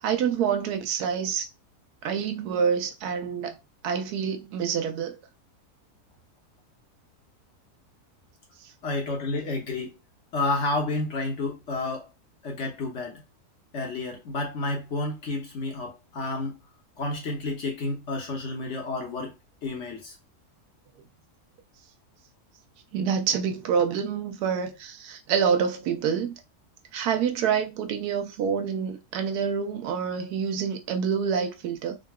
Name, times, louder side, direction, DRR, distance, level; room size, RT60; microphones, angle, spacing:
voice 1, 0.0-1.5 2.0-3.6 3.8-5.2 22.9-26.3 26.9-32.0, right 7 dB, 80° right, 1.1 m, -27 dB
voice 2, 8.8-9.9 10.3-12.1 12.4-13.2 13.7-16.6 17.0-19.3 19.6-20.2, left 2 dB, 55° left, 1.0 m, -30 dB
3.7 x 2.2 x 2.2 m
omnidirectional pair, 1.6 m